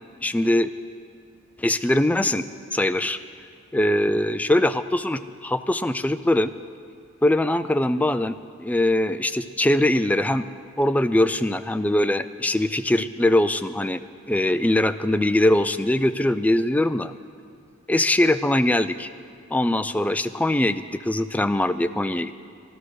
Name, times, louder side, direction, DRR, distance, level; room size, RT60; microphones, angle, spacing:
voice 1, 0.2-0.7 1.6-2.4 2.7-3.2 3.7-6.5 7.2-8.3 8.6-10.5 10.8-17.1 17.9-19.1 19.5-22.4, left 1 dB, 10° left, 11 dB, 0.3 m, -22 dB
13.5 x 12.0 x 6.4 m, 2.3 s
head